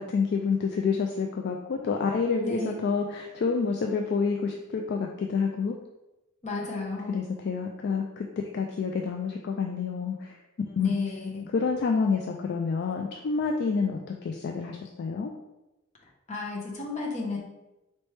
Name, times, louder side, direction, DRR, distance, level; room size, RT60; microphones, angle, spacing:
voice 1, 0.0-5.7 7.1-8.3 8.5-10.4 10.7-10.9 11.5-15.3, left 5 dB, 50° left, 2 dB, 0.3 m, -28 dB
voice 2, 2.4-2.7 6.4-7.2 10.8-11.5 16.3-17.4, left 3 dB, 35° left, -2 dB, 0.9 m, -32 dB
4.3 x 3.1 x 3.2 m, 0.99 s
head